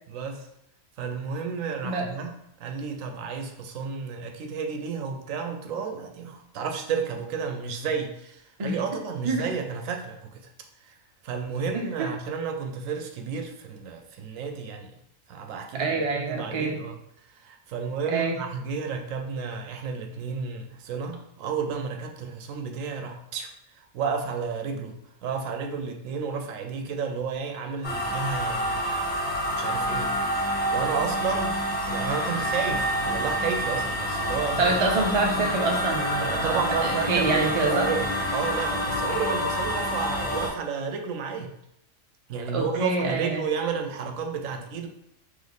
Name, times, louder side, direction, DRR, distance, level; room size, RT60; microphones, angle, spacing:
voice 1, 0.1-0.5 1.0-2.3 2.6-10.5 10.8-10.9 11.2-15.0 15.3-34.8 36.2-41.5 42.3-44.9, right 6 dB, 80° right, 4 dB, 1.0 m, -32 dB
voice 2, 11.7-12.1 15.7-16.8 18.1-18.4 34.6-37.9 42.5-43.4, right 3 dB, 40° right, 1 dB, 0.4 m, -26 dB
sound 1, 27.8-40.5, equal, 60° left, 1.6 m, -28 dB
3.2 x 3.1 x 3.9 m, 0.78 s
omnidirectional pair, 1.4 m